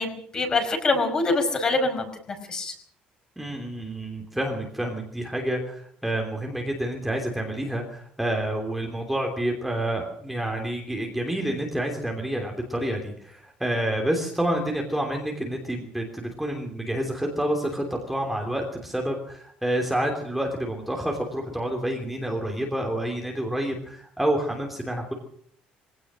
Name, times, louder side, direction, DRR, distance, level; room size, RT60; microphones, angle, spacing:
voice 1, 0.0-2.1 2.5-2.7, left 3 dB, 25° left, 6 dB, 5.2 m, -24 dB
voice 2, 3.4-25.1, right 1 dB, ahead, 1 dB, 3.1 m, -28 dB
23.5 x 17.5 x 6.4 m, 0.62 s
cardioid pair, 165°, 3 cm